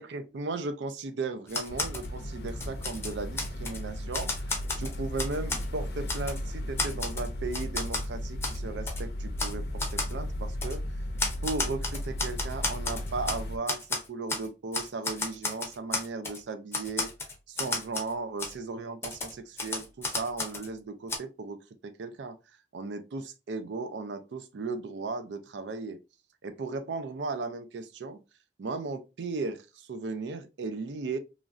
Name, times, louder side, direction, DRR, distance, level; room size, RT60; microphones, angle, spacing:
voice 1, 0.0-10.8 11.4-17.1 17.5-22.4 22.7-26.0 26.4-28.2 28.6-31.2, right 3 dB, 85° right, 0.4 m, -36 dB
Typewriter, 1.5-2.1 2.5-3.8 4.1-5.7 6.1-6.4 6.8-8.1 8.4-8.6 8.9-9.0 9.4-9.5 9.8-10.1 10.6-10.8 11.2-13.4 13.7-14.5 14.7-16.4 16.7-18.1 18.4-18.5 19.0-20.7 21.1-21.2, left 3 dB, 15° left, 0.5 m, -33 dB
sound 1, 1.7-13.6, left 1 dB, 60° left, 0.5 m, -35 dB
3.0 x 2.5 x 2.4 m
head